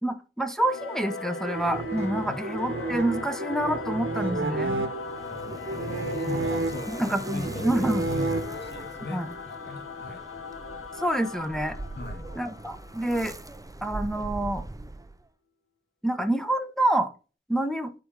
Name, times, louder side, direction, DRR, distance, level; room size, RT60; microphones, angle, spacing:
voice 1, 0.0-4.9 6.9-8.0 9.1-9.3 11.0-11.8 12.4-13.3 13.8-14.6 16.0-17.1 17.5-17.9, right 1 dB, ahead, 6 dB, 0.9 m, -27 dB
Singing / Musical instrument, 0.6-13.5, left 3 dB, 85° left, 0.9 m, -39 dB
sound 1, 1.4-8.9, right 2 dB, 70° right, 1.2 m, -31 dB
sound 2, 4.9-15.3, right 2 dB, 15° right, 0.5 m, -42 dB
voice 2, 5.3-10.2 12.0-12.3, left 2 dB, 55° left, 3 dB, 2.2 m, -39 dB
7.9 x 4.0 x 3.6 m, 0.33 s
cardioid pair, 45°, 21 cm